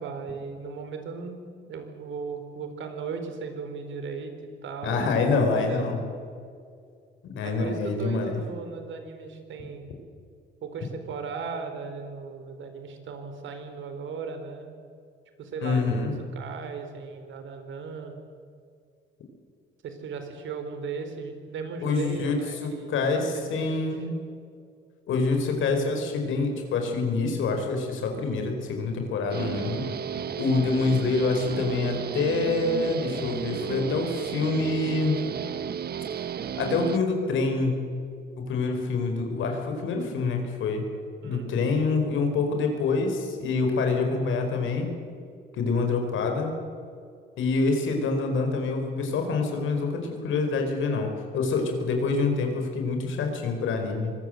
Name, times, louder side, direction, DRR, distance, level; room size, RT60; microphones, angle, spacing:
voice 1, 0.0-4.3 4.6-6.0 7.4-9.9 10.6-14.7 15.4-16.1 16.3-18.1 19.8-24.1 41.2-41.6, right 5 dB, 75° right, 7 dB, 4.2 m, -37 dB
voice 2, 4.8-6.0 7.2-8.4 15.6-16.1 21.8-24.1 25.1-29.9 30.4-35.2 36.6-37.8 38.4-40.9 41.2-44.9 45.5-46.5 47.4-54.1, left 4 dB, 80° left, 4 dB, 4.9 m, -26 dB
Guitar, 29.3-37.0, right 8 dB, 50° right, 0.9 m, -33 dB
24.5 x 20.0 x 7.9 m, 2.3 s
cardioid pair, 90°, 20 cm